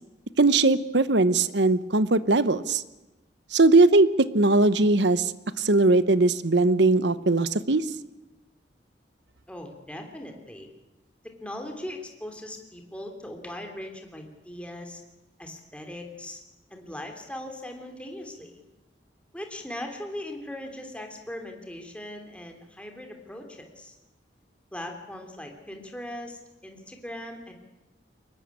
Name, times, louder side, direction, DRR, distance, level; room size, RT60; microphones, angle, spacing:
voice 1, 0.4-2.8 3.5-5.3 5.6-7.8, right 2 dB, 70° right, 15 dB, 1.0 m, -20 dB
voice 2, 9.5-10.7 11.2-15.0 15.4-16.4 16.7-18.6 19.3-24.0 24.7-27.5, left 1 dB, 5° left, 3 dB, 3.2 m, -39 dB
23.5 x 20.0 x 8.6 m, 1.0 s
head